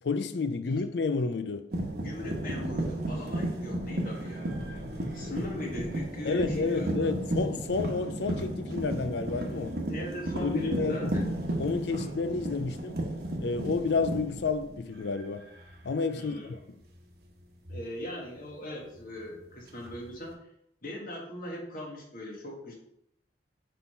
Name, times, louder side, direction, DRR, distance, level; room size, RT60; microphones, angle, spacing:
voice 1, 0.0-1.7 6.3-9.8 10.4-11.1 11.6-13.0 13.4-15.5 15.8-16.6, left 4 dB, 70° left, 0.5 m, -30 dB
sound 1, 1.7-15.2 15.5-15.9 17.7-17.8 19.7-20.3, right 1 dB, 60° right, 1.1 m, -33 dB
voice 2, 2.0-4.6 5.1-7.1 9.9-11.2 16.1-16.5 17.7-20.3 20.8-22.7, left 1 dB, 50° left, 1.7 m, -39 dB
6.5 x 3.8 x 5.5 m
head